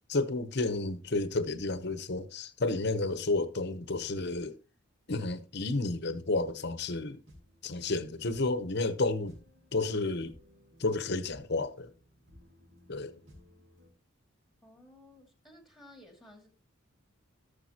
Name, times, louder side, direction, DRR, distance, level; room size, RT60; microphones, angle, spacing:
voice 1, 0.1-4.6 5.1-7.2 7.6-9.4 9.7-10.4 10.8-11.9 12.9-13.2, left 2 dB, 50° left, 0.8 m, -31 dB
sound 1, 6.9-13.9, left 1 dB, 75° right, 5.3 m, -59 dB
voice 2, 14.6-16.5, left 1 dB, ahead, 2.3 m, -55 dB
17.0 x 6.7 x 2.9 m
head